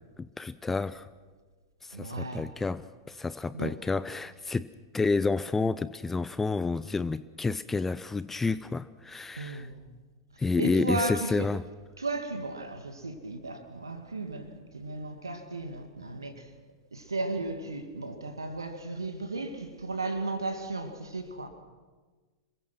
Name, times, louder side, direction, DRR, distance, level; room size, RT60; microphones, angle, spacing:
voice 1, 0.2-1.1 1.8-4.7 4.9-9.7 10.4-11.6, left 4 dB, 10° left, 0.6 m, -30 dB
voice 2, 1.9-2.4 3.5-3.8 9.4-9.7 10.6-11.5 12.0-16.5 16.9-21.5, right 2 dB, 85° right, 2.2 m, -35 dB
26.5 x 22.5 x 6.1 m
figure-of-eight pair, 95°, 2 cm